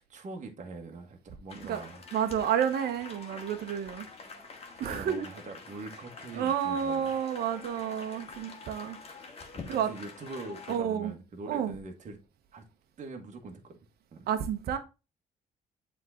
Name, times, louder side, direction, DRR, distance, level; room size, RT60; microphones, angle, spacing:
voice 1, 0.0-2.0 4.7-7.1 9.7-12.2 12.5-12.6 13.0-13.8 14.1-14.3, right 3 dB, 45° right, 1.5 m, -43 dB
sound 1, 1.5-10.8, left 4 dB, 35° left, 1.7 m, -47 dB
voice 2, 2.1-4.1 4.8-5.3 6.3-9.0 9.7-9.9 10.7-11.1 11.5-11.7 14.3-14.8, right 8 dB, 70° right, 1.0 m, -30 dB
7.5 x 3.7 x 3.7 m
cardioid pair, 85°, 17 cm